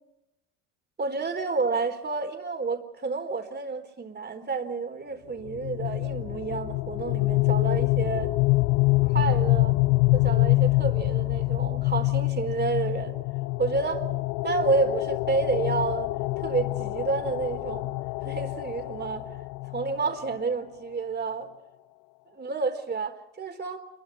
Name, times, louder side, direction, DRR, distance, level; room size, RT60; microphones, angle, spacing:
voice 1, 1.0-8.3 9.0-9.8 10.1-13.2 13.6-14.1 14.4-17.9 18.2-19.3 19.7-21.5 22.4-23.8, right 4 dB, 30° right, 4.3 m, -29 dB
sound 1, 5.5-20.3, left 23 dB, 70° left, 0.7 m, -26 dB
28.0 x 23.0 x 4.5 m
supercardioid pair, 80°, 36 cm